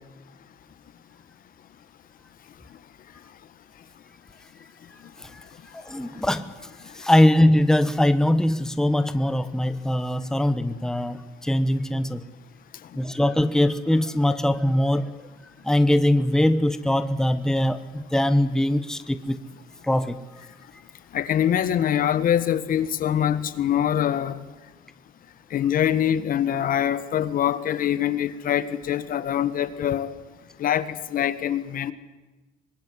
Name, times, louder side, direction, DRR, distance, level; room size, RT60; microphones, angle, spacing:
voice 1, 5.7-6.5 6.9-12.2 12.9-15.1 15.6-19.4 19.8-20.2, left 1 dB, 5° left, 11 dB, 1.2 m, -22 dB
voice 2, 21.1-24.4 25.5-30.2 30.6-31.9, left 10 dB, 55° left, 14 dB, 1.7 m, -24 dB
24.5 x 21.0 x 9.8 m, 1.1 s
cardioid pair, 110°, 17 cm